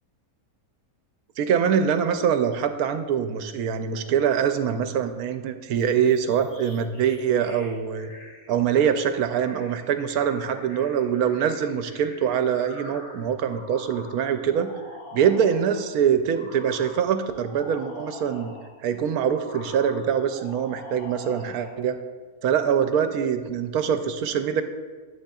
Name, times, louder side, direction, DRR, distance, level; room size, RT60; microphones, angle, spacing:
voice 1, 1.4-8.1 8.5-14.7 15.1-18.5 18.8-22.0 22.4-24.6, right 8 dB, 85° right, 8 dB, 1.1 m, -24 dB
sound 1, 5.7-15.9 16.3-18.8 19.2-21.8, left 1 dB, 75° left, 1.7 m, -45 dB
11.5 x 7.8 x 2.4 m, 1.4 s
omnidirectional pair, 1.5 m